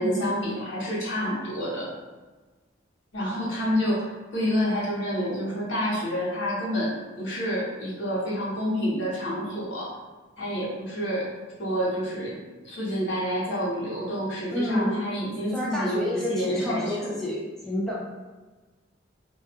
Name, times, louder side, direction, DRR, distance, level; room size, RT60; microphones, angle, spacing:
voice 1, 0.0-1.9 3.1-9.9 10.4-11.3 11.6-12.4 12.6-17.1, equal, 80° left, -6 dB, 0.9 m, -28 dB
voice 2, 14.5-15.0 15.5-18.0, left 1 dB, ahead, -6 dB, 0.4 m, -29 dB
2.3 x 2.2 x 2.7 m, 1.3 s
head